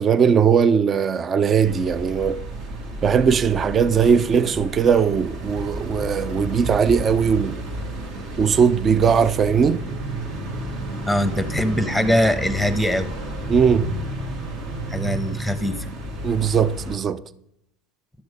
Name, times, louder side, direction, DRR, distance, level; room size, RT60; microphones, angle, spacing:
voice 1, 0.0-2.4 3.0-7.6 8.4-9.8 13.5-13.9 16.2-17.2, right 6 dB, 30° right, 0.4 m, -19 dB
sound 1, 1.6-17.0, right 1 dB, 60° right, 1.8 m, -31 dB
voice 2, 11.0-13.1 14.9-15.9, equal, 5° right, 1.0 m, -22 dB
11.0 x 6.1 x 5.2 m
hypercardioid pair, 95°, 0 cm